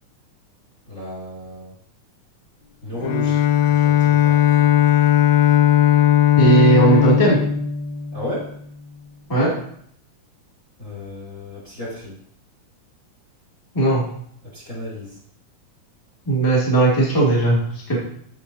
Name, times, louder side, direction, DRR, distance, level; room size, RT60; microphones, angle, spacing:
voice 1, 0.9-1.7 2.8-3.4 3.7-4.7 8.1-8.5 10.8-12.2 14.5-15.2, left 1 dB, 25° left, -6 dB, 2.1 m, -33 dB
Bowed string instrument, 3.0-8.6, left 11 dB, 75° left, 1.7 m, -17 dB
voice 2, 6.4-7.4 9.3-9.5 13.7-14.0 16.3-18.0, right 3 dB, 5° left, -5 dB, 1.9 m, -17 dB
14.5 x 5.5 x 2.8 m, 0.66 s
omnidirectional pair, 3.8 m